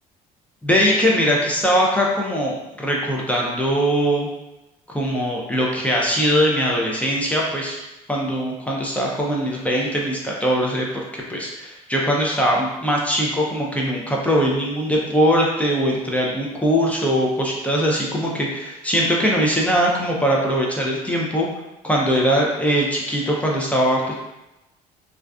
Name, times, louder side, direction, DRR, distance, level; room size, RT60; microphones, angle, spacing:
voice 1, 0.6-4.3 4.9-7.8 8.1-10.9 11.1-21.5 21.8-24.1, equal, 5° left, -3 dB, 0.5 m, -21 dB
2.4 x 2.4 x 2.3 m, 0.96 s
supercardioid pair, 75°, 18 cm